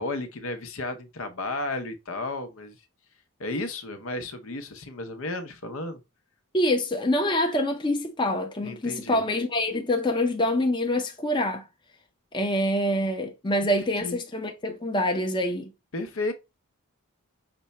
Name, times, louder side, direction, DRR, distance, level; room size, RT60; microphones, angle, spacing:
voice 1, 0.0-2.8 3.4-6.0 8.6-9.2 13.6-13.7 14.0-14.2 15.9-16.3, left 2 dB, 70° left, 0.7 m, -33 dB
voice 2, 6.5-11.6 12.3-15.7, left 1 dB, 20° left, 0.6 m, -25 dB
5.9 x 2.2 x 4.0 m
head